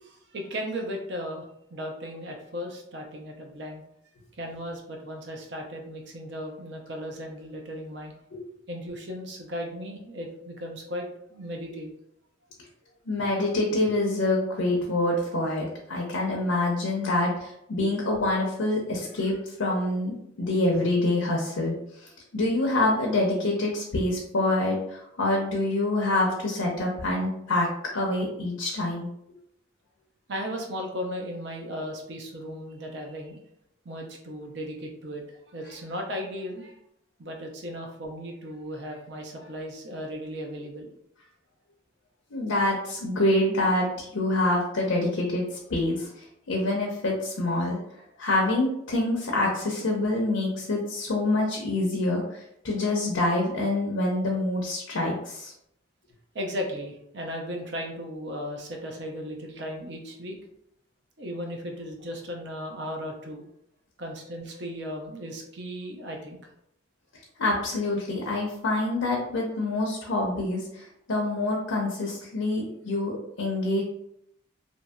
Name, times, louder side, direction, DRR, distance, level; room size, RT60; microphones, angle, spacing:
voice 1, 0.0-8.1 8.7-11.9 30.3-33.4 33.8-36.8 37.2-40.9 56.3-60.4 61.2-63.5 64.0-66.4, equal, 60° right, 2 dB, 0.6 m, -36 dB
voice 2, 13.1-27.7 27.9-29.1 42.3-55.5 67.4-73.8, left 2 dB, 90° left, -1 dB, 0.6 m, -26 dB
2.8 x 2.6 x 2.2 m, 0.75 s
head